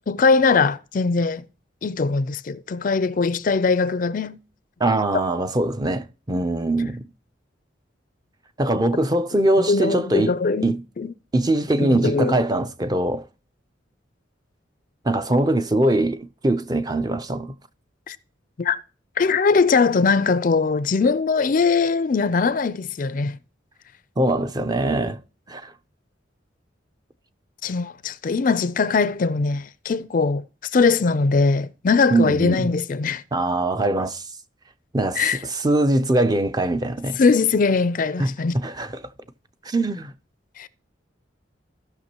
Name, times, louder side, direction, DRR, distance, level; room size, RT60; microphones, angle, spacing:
voice 1, 0.1-1.4 1.8-4.4 9.6-11.1 11.8-12.4 18.1-18.2 18.6-18.8 19.2-23.4 27.6-30.4 30.7-33.2 35.2-35.4 37.2-38.6 40.6-40.7, left 4 dB, 45° left, 0.4 m, -21 dB
voice 2, 4.8-7.0 8.6-10.3 10.6-10.8 11.3-13.2 15.0-17.5 24.2-25.2 25.5-25.7 32.1-32.7 33.3-34.3 34.9-37.2 38.2-39.1 39.6-40.1, right 1 dB, 20° right, 0.5 m, -22 dB
16.0 x 6.0 x 2.9 m
head